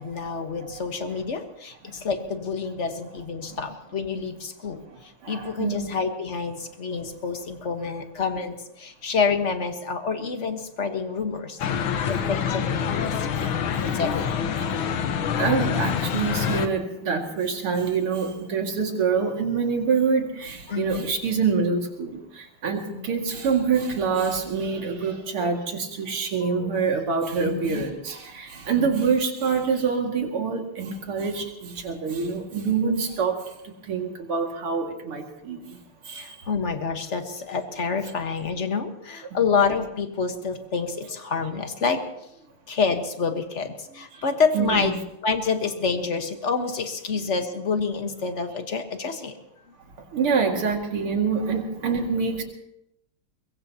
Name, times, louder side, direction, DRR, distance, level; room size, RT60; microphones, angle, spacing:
voice 1, 0.0-13.0 13.4-13.5 13.9-14.5 20.7-21.1 22.9-23.1 25.4-25.5 26.4-26.7 27.4-27.8 28.8-29.1 36.1-42.1 42.7-45.0 45.2-49.3, left 5 dB, 35° left, 6 dB, 1.4 m, -28 dB
voice 2, 5.2-5.9 13.4-14.2 14.9-15.0 15.4-33.5 33.9-35.6 36.0-36.4 44.5-44.9 50.1-52.4, right 5 dB, 80° right, 2 dB, 3.1 m, -26 dB
sound 1, 11.6-16.7, left 7 dB, 70° left, 1.8 m, -26 dB
22.5 x 22.5 x 2.9 m, 0.81 s
omnidirectional pair, 2.4 m